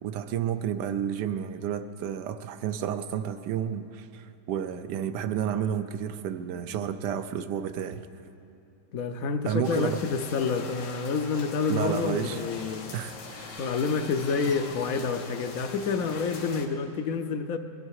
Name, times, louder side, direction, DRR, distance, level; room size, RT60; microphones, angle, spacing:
voice 1, 0.0-8.0 9.4-10.0 11.7-12.4 12.9-13.6, right 9 dB, 75° right, 11 dB, 1.3 m, -31 dB
voice 2, 8.9-12.9 13.6-17.6, left 5 dB, 60° left, 9 dB, 1.0 m, -28 dB
sound 1, 9.6-16.7, left 4 dB, 90° left, 1.9 m, -43 dB
sound 2, 11.6-16.6, left 2 dB, 35° left, 0.6 m, -48 dB
22.0 x 13.0 x 4.7 m, 2.6 s
omnidirectional pair, 1.9 m